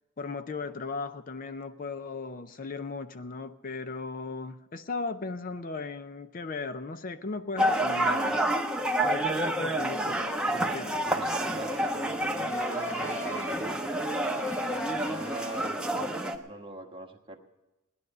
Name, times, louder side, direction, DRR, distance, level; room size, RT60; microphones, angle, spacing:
voice 1, 0.2-8.4 9.0-11.0, left 4 dB, 45° left, 11 dB, 0.5 m, -37 dB
sound 1, 7.6-16.4, right 1 dB, 5° right, 0.9 m, -29 dB
voice 2, 10.0-13.8 14.7-17.4, right 1 dB, 25° right, 2 dB, 1.3 m, -43 dB
Bowed string instrument, 10.9-15.9, left 1 dB, 65° left, 3.5 m, -44 dB
17.5 x 11.0 x 6.6 m, 1.0 s
head